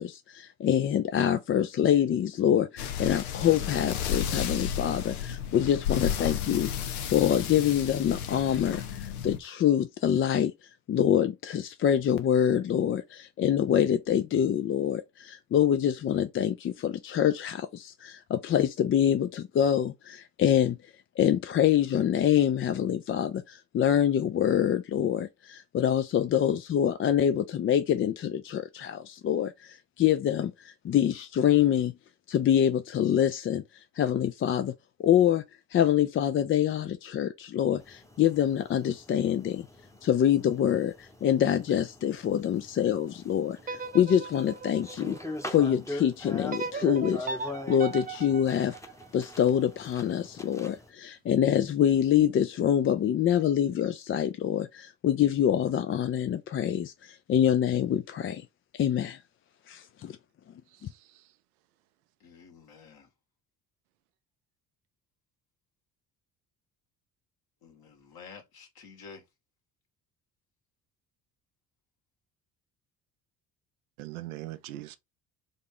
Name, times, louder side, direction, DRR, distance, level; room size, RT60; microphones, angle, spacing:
voice 1, 0.0-6.7 7.1-10.5 10.9-20.8 21.2-31.9 32.3-34.7 35.0-35.4 35.7-39.7 40.0-45.2 45.5-47.3 47.7-48.8 49.1-58.4 58.7-59.2 59.7-60.2, left 10 dB, 30° left, 0.4 m, -25 dB
sound 1, 2.8-9.4, left 8 dB, 80° left, 0.8 m, -33 dB
sound 2, 37.8-50.9, left 1 dB, 5° left, 1.0 m, -43 dB
sound 3, 43.6-45.8 46.5-49.6, right 4 dB, 20° right, 0.7 m, -38 dB
voice 2, 60.7-61.3 74.0-75.0, right 16 dB, 80° right, 0.6 m, -41 dB
voice 3, 62.2-63.1 67.6-69.2, left 5 dB, 55° left, 2.1 m, -50 dB
3.6 x 3.5 x 3.8 m
hypercardioid pair, 55°, 43 cm